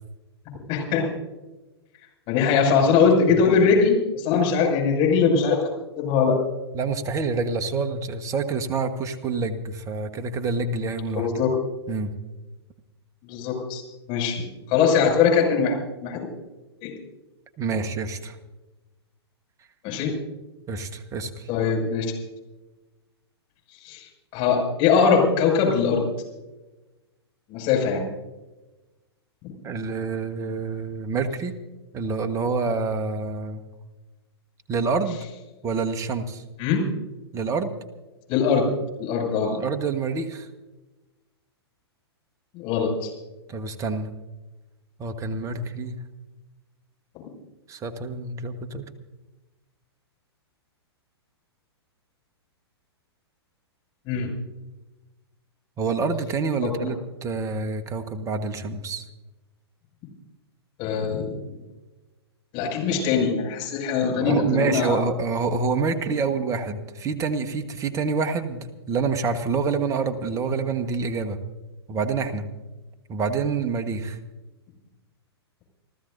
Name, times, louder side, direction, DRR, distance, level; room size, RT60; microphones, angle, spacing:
voice 1, 0.7-1.1 2.3-5.6 6.0-6.4 11.2-11.5 13.2-13.8 14.1-15.8 16.0-16.3 16.8-16.9 19.8-20.1 21.5-22.1 23.8-26.1 27.5-28.0 29.4-29.5 36.6-36.9 38.3-38.6 39.0-39.5 42.5-43.1 54.1-54.3 60.8-61.3 62.5-65.1, left 5 dB, 35° left, 0 dB, 6.3 m, -21 dB
voice 2, 6.7-11.3 11.9-12.1 17.6-18.4 20.7-21.5 29.6-31.5 31.9-33.6 34.7-35.2 35.6-36.4 37.3-37.7 39.4-40.5 43.5-44.1 45.0-46.0 47.7-48.9 55.8-59.1 64.2-71.4 71.9-72.5 73.1-74.2, right 4 dB, 20° right, 8 dB, 1.3 m, -27 dB
30.0 x 14.5 x 2.6 m, 1.1 s
figure-of-eight pair, 110°, 14 cm